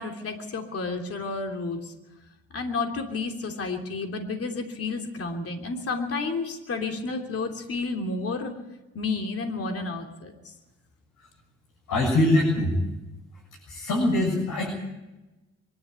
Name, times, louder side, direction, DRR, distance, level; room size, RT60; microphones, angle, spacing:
voice 1, 0.0-1.9 2.5-8.5 8.9-10.5, left 3 dB, 50° left, 3 dB, 3.1 m, -31 dB
voice 2, 11.9-12.7 13.7-14.8, left 1 dB, 85° left, -2 dB, 7.5 m, -23 dB
24.5 x 12.0 x 9.5 m, 1.0 s
cardioid pair, 90°, 30 cm